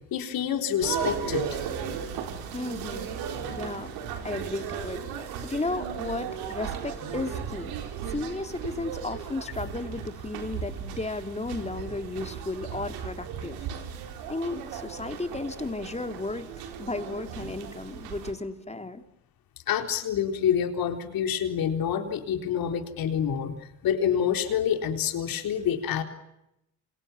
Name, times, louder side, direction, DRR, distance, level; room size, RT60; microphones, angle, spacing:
voice 1, 0.1-1.5 19.7-23.5 23.8-26.0, left 8 dB, 70° left, 7 dB, 4.1 m, -27 dB
sound 1, 0.8-18.3, right 7 dB, 85° right, 4.0 m, -36 dB
voice 2, 2.5-3.2 3.5-3.9 4.2-7.7 8.1-13.6 14.3-19.0, left 2 dB, 20° left, 7 dB, 3.4 m, -34 dB
28.5 x 27.0 x 7.3 m, 0.85 s
supercardioid pair, 65°, 36 cm